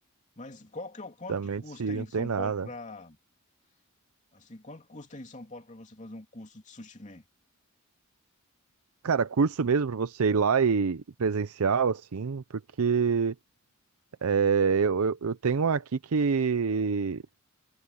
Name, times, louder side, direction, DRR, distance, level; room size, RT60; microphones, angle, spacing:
voice 1, 0.4-3.2 4.3-7.2, left 2 dB, 35° left, 2.9 m, -43 dB
voice 2, 1.3-2.7 9.0-13.3 14.2-17.2, right 5 dB, 75° right, 0.6 m, -26 dB
head